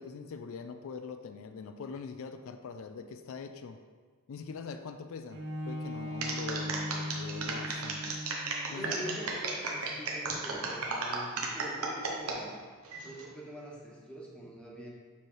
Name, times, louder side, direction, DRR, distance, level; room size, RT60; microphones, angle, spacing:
voice 1, 0.0-3.8 4.3-8.2 8.7-9.4, left 5 dB, 65° left, 8 dB, 0.4 m, -43 dB
Bowed string instrument, 5.3-10.9 11.6-11.7, left 1 dB, 60° right, 0.7 m, -41 dB
sound 1, 6.2-12.4 12.9-13.3, right 4 dB, 90° right, 0.9 m, -34 dB
voice 2, 7.3-7.7 8.7-12.6 13.0-14.9, equal, 5° left, -4 dB, 1.0 m, -44 dB
7.1 x 3.2 x 4.5 m, 1.5 s
head